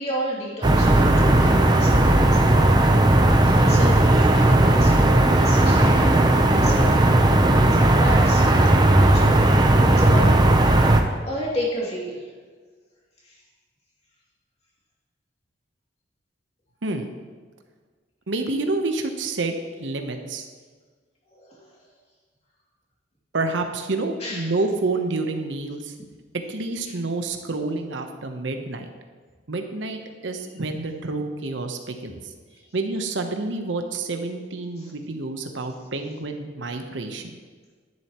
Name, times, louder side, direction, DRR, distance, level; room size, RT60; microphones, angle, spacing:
voice 1, 0.0-2.8 3.1-7.2 7.7-10.3 11.2-12.3 13.2-13.4 21.3-21.7 24.2-24.5 32.5-32.7 34.8-34.9, equal, 35° left, -5 dB, 2.6 m, -32 dB
sound 1, 0.6-11.0, right 1 dB, 25° right, 0.7 m, -16 dB
voice 2, 18.3-20.5 23.3-25.9 26.5-28.9 29.5-32.3 32.7-37.4, right 3 dB, 80° right, 5 dB, 0.9 m, -28 dB
10.5 x 10.5 x 3.0 m, 1.5 s
head